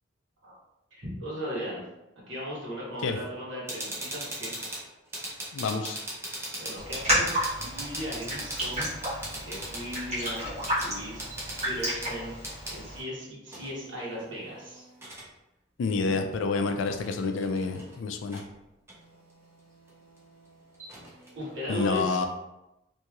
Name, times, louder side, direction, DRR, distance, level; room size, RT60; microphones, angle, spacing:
voice 1, 0.9-1.8 2.3-4.5 6.6-8.9 9.4-10.5 10.7-11.2 11.6-14.8 16.0-16.3 21.3-22.3, equal, 65° right, -7 dB, 1.2 m, -37 dB
sound 1, 3.7-12.8 13.5-15.3 16.1-16.2 16.7-18.0 18.3-18.5 18.9-21.7, right 1 dB, 15° right, 0.5 m, -40 dB
voice 2, 5.5-6.0 15.8-18.4 21.7-22.2, left 4 dB, 70° left, 6 dB, 0.3 m, -28 dB
Raindrop, 6.8-13.0, equal, 30° right, 1.1 m, -31 dB
2.9 x 2.7 x 2.4 m, 0.93 s
head